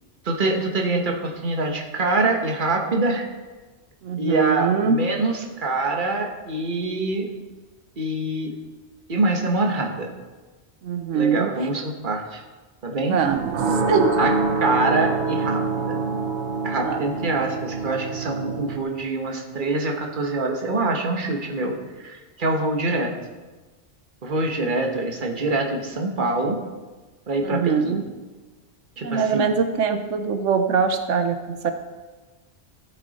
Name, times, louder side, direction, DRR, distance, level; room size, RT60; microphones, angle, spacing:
voice 1, 0.2-3.2 4.2-7.3 8.0-8.6 9.1-10.1 11.1-12.4 12.8-13.2 14.2-16.0 16.6-23.1 24.2-26.6 27.3-28.0 29.0-29.5, right 2 dB, 45° right, 2 dB, 1.4 m, -25 dB
voice 2, 4.0-5.0 10.8-11.5 13.1-14.2 16.8-17.0 27.4-28.0 29.0-31.7, right 6 dB, 90° right, 8 dB, 1.1 m, -23 dB
sound 1, 13.3-18.8, right 3 dB, 70° right, 1.2 m, -25 dB
14.0 x 8.1 x 4.1 m, 1.3 s
omnidirectional pair, 1.2 m